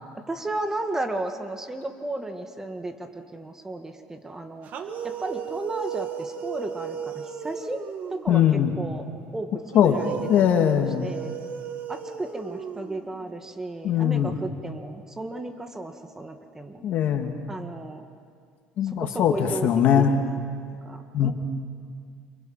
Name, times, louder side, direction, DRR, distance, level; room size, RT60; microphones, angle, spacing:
voice 1, 0.3-4.7 5.0-7.8 8.1-9.1 9.3-10.6 11.0-11.3 11.9-16.9 17.5-18.0 18.9-20.4 20.8-21.3, right 2 dB, 15° right, 6 dB, 1.9 m, -34 dB
sound 1, 4.6-8.4 9.7-13.3, right 7 dB, 50° right, 2.0 m, -35 dB
voice 2, 8.3-8.7 9.7-10.0 10.3-11.1 13.8-14.3 16.8-17.3 18.8-20.1 21.1-21.3, left 9 dB, 60° left, 5 dB, 2.4 m, -21 dB
29.0 x 28.0 x 5.9 m, 2.2 s
cardioid pair, 115°, 3 cm